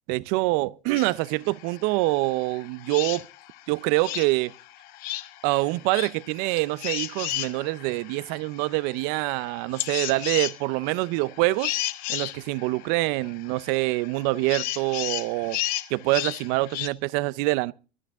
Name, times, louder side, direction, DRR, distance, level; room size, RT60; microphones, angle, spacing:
voice 1, 0.1-3.3 3.7-4.5 5.4-11.7 12.1-15.6 15.9-17.7, right 21 dB, 50° right, 0.6 m, -25 dB
sound 1, 0.9-16.9, left 16 dB, 50° left, 1.2 m, -35 dB
24.0 x 9.8 x 3.6 m
supercardioid pair, 150°, 20 cm